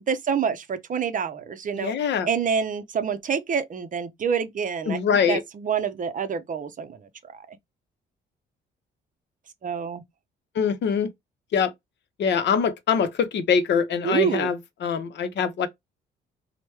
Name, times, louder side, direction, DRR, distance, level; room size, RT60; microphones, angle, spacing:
voice 1, 0.0-1.9 2.3-5.0 5.3-7.6 9.6-10.0 14.0-14.5, right 7 dB, 40° right, 0.5 m, -27 dB
voice 2, 1.7-2.3 4.9-5.4 10.5-11.1 11.5-11.7 12.2-15.7, left 6 dB, 65° left, 0.7 m, -23 dB
3.0 x 2.1 x 3.2 m
cardioid pair, 90°, 20 cm